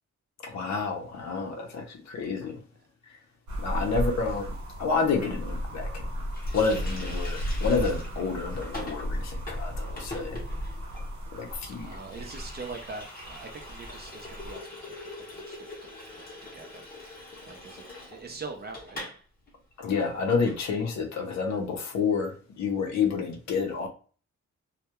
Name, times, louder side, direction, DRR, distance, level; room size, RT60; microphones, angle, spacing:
voice 1, 0.4-2.6 3.1-3.2 3.6-4.4 4.8-6.0 6.5-10.4 11.3-12.0 19.8-23.9, left 5 dB, 65° left, 0.6 m, -29 dB
sound 1, 3.5-14.6, equal, 70° right, 0.8 m, -35 dB
Water tap faucet, 6.3-19.2 19.5-19.6 19.9-20.6, left 1 dB, 30° left, 0.7 m, -44 dB
voice 2, 11.8-14.9 15.3-16.3 16.5-19.1, right 4 dB, 35° right, 0.4 m, -43 dB
2.2 x 2.1 x 2.8 m
wide cardioid pair, 175°, 30 cm